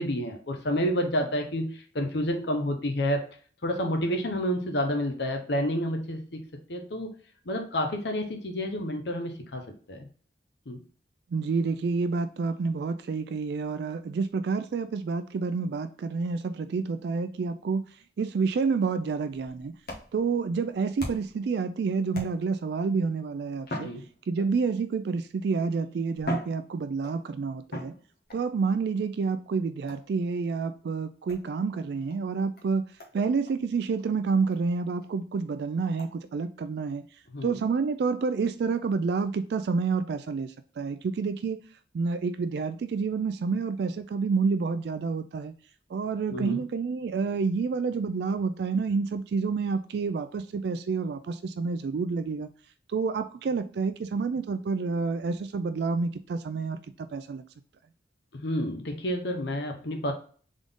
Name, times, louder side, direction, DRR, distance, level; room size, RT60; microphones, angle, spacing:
voice 1, 0.0-3.2 3.6-6.4 6.7-7.1 7.5-10.1 10.7-10.8 23.8-24.0 37.3-37.6 46.3-46.6 58.3-60.1, equal, 75° left, 0.8 m, -29 dB
voice 2, 11.3-17.8 18.2-19.7 20.1-23.9 24.3-27.9 28.3-32.8 33.1-37.0 37.4-41.7 41.9-45.5 45.9-52.5 52.9-57.4, right 4 dB, 65° right, 0.3 m, -29 dB
sound 1, 19.8-21.5 22.1-22.7 23.6-24.7 25.6-25.7 26.1-27.2 27.7-28.4 29.9-30.2 31.3-31.5 32.1-32.2 32.6-32.7 33.0-33.2 33.5-33.6 34.0-34.1 34.5-34.6 35.0-35.1 36.0-36.1, equal, 55° left, 1.2 m, -39 dB
3.7 x 3.7 x 3.5 m
head